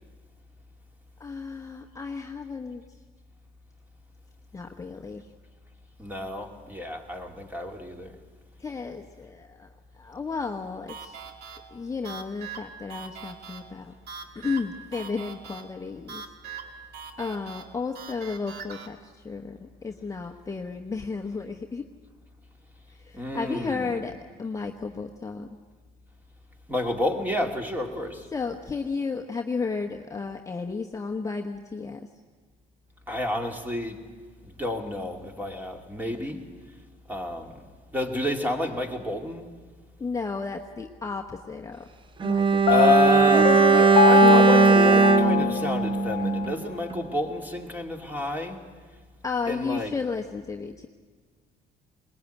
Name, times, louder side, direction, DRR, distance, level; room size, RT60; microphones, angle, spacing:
voice 1, 1.2-3.0 4.5-5.3 8.6-9.7 9.9-11.2 11.7-13.9 14.3-16.2 16.6-16.7 17.2-21.8 23.0-25.5 28.3-32.0 40.0-41.9 42.2-42.8 43.3-44.1 49.2-50.9, left 4 dB, 20° left, 3 dB, 1.0 m, -33 dB
voice 2, 6.0-8.1 23.1-24.0 26.7-28.3 33.1-34.0 34.4-36.4 37.1-37.6 37.9-39.5 42.7-43.5 43.7-48.6 49.5-49.9, left 1 dB, 10° right, 3 dB, 2.6 m, -30 dB
sound 1, 10.9-18.9, right 6 dB, 70° right, 2.0 m, -42 dB
Bowed string instrument, 42.2-46.6 46.9-47.1, right 5 dB, 30° right, 0.8 m, -19 dB
Piano, 42.7-46.5, left 10 dB, 55° left, 0.6 m, -23 dB
21.5 x 20.0 x 9.2 m, 1.5 s
cardioid pair, 110°, 17 cm